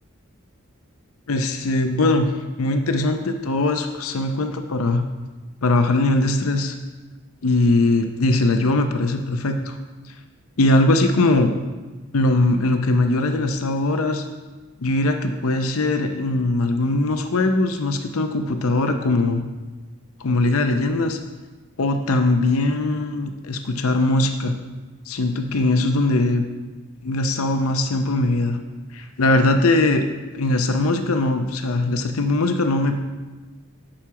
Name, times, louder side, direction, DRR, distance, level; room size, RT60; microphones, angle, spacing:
voice 1, 1.3-2.3 2.6-5.1 5.6-6.7 7.4-9.8 10.6-11.5 12.1-14.3 14.8-19.4 20.2-21.2 21.8-24.6 25.1-26.4 27.0-28.6 28.9-33.0, left 2 dB, 80° left, 6 dB, 0.6 m, -20 dB
8.9 x 6.1 x 4.7 m, 1.3 s
head